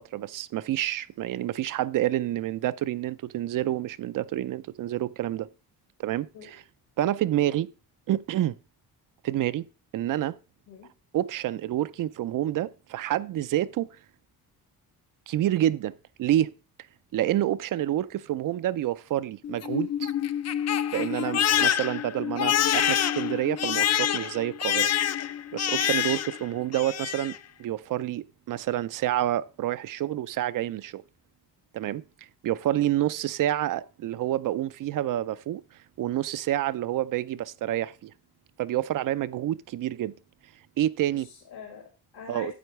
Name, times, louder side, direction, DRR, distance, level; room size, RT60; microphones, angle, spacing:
voice 1, 0.0-5.5 6.0-6.6 7.0-7.7 8.1-8.5 9.2-9.6 9.9-10.4 11.1-13.9 15.3-16.5 17.1-20.1 20.9-24.9 25.5-27.3 27.6-31.0 31.7-32.0 32.4-35.6 36.0-38.1 38.6-40.1 40.8-41.3 42.3-42.5, right 13 dB, 60° right, 0.5 m, -28 dB
Crying sobbing, 19.4-26.4 26.7-27.4, left 10 dB, 45° left, 0.5 m, -26 dB
voice 2, 41.1-42.5, left 7 dB, 70° left, 1.9 m, -44 dB
9.3 x 8.0 x 3.1 m
cardioid pair, 130°, 38 cm